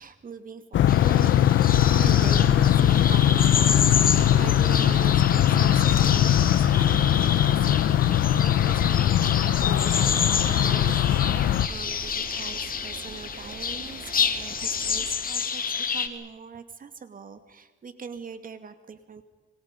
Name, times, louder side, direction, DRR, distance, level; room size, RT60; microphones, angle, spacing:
voice 1, 0.0-1.4 1.7-15.6 15.9-19.2, right 6 dB, 45° right, 9 dB, 2.3 m, -41 dB
sound 1, 0.7-11.7, left 11 dB, 70° left, 0.9 m, -20 dB
sound 2, 0.9-16.1, left 6 dB, 45° left, 2.4 m, -29 dB
sound 3, 1.7-15.2, right 5 dB, 60° right, 3.3 m, -41 dB
28.0 x 25.0 x 5.3 m, 1.2 s
cardioid pair, 90°, 20 cm